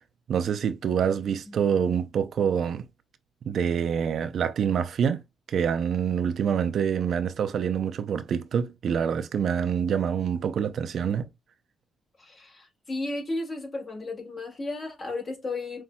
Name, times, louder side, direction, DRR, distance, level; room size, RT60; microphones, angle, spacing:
voice 1, 0.3-2.9 3.5-5.2 5.5-11.3, right 7 dB, 60° right, 0.5 m, -26 dB
voice 2, 12.2-15.8, left 2 dB, 35° left, 1.9 m, -34 dB
5.5 x 2.6 x 2.3 m
cardioid pair, 90°, 0 cm